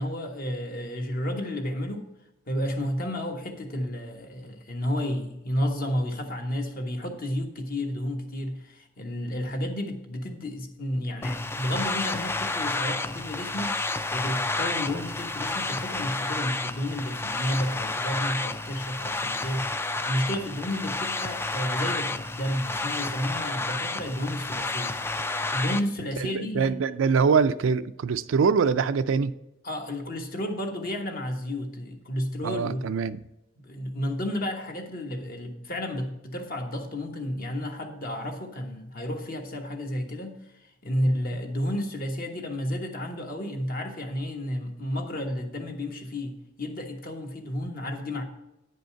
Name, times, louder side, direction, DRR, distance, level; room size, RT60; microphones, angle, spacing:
voice 1, 0.0-2.1 2.5-13.8 14.1-25.0 25.5-26.7 29.6-32.8 33.6-40.4 40.8-48.2, left 1 dB, 45° left, 1.2 m, -31 dB
sound 1, 11.2-25.8, left 3 dB, 10° left, 0.3 m, -30 dB
voice 2, 26.2-29.3 32.4-33.2, right 5 dB, 75° right, 0.4 m, -24 dB
9.8 x 5.2 x 5.6 m
head